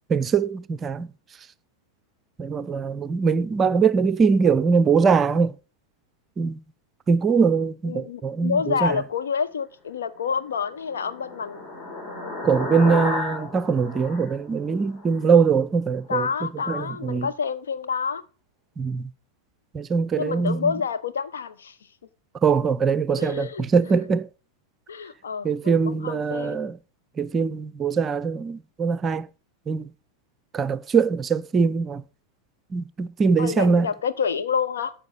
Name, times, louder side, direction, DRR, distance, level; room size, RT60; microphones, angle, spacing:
voice 1, 0.1-1.1 2.4-5.5 6.4-6.6 7.1-9.0 12.4-16.3 16.7-17.3 18.8-19.1 19.7-20.7 22.4-24.3 25.4-26.8 27.2-29.3 29.7-29.9 30.5-32.0 32.7-33.9, right 5 dB, 20° right, 0.6 m, -22 dB
voice 2, 7.8-11.6 16.1-18.2 20.2-21.8 23.2-23.7 24.9-26.7 33.4-34.9, left 6 dB, 65° left, 1.0 m, -28 dB
sound 1, 10.4-15.2, left 3 dB, 35° left, 4.9 m, -33 dB
13.0 x 7.4 x 5.2 m
figure-of-eight pair, 90°, 0 cm